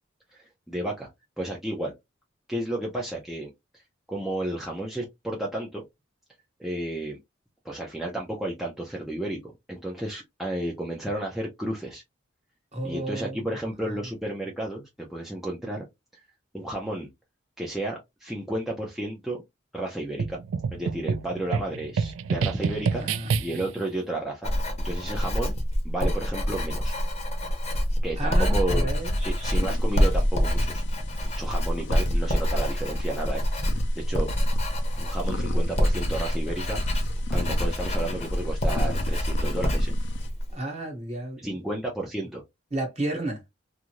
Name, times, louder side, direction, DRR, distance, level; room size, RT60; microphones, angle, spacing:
voice 1, 0.7-1.1 1.4-1.9 2.5-3.5 4.1-5.8 6.6-7.2 7.6-12.0 12.8-15.8 16.5-17.1 17.6-19.4 19.7-20.4 20.7-23.1 23.4-24.5 24.8-25.5 25.8-26.9 28.0-28.9 29.2-30.8 31.2-33.4 34.1-34.3 34.9-36.8 37.3-40.0 41.4-42.4, right 1 dB, ahead, 0.6 m, -32 dB
voice 2, 12.7-13.4 22.9-23.3 28.2-29.1 40.5-41.6 42.7-43.4, right 1 dB, 35° right, 1.2 m, -32 dB
sound 1, 20.2-23.8, right 5 dB, 80° right, 0.3 m, -28 dB
Writing, 24.4-40.5, equal, 30° left, 0.8 m, -26 dB
sound 2, 29.0-40.3, left 2 dB, 60° left, 0.5 m, -37 dB
2.7 x 2.5 x 3.0 m
head